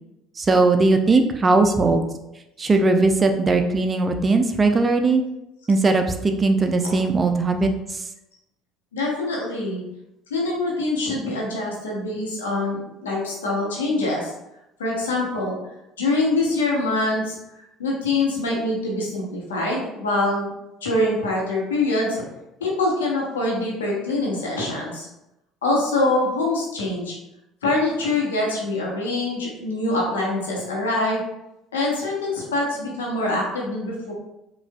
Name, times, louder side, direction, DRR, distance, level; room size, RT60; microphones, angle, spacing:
voice 1, 0.4-2.0 2.6-5.2 5.7-8.0, right 3 dB, 30° right, 6 dB, 0.4 m, -19 dB
voice 2, 8.9-9.8 10.3-14.3 14.8-15.6 16.0-17.4 17.8-20.5 20.8-22.2 22.6-25.1 25.6-27.1 27.6-31.2 31.7-34.1, left 2 dB, 90° left, -3 dB, 0.9 m, -24 dB
4.7 x 2.4 x 2.3 m, 0.90 s
hypercardioid pair, 65°, 0 cm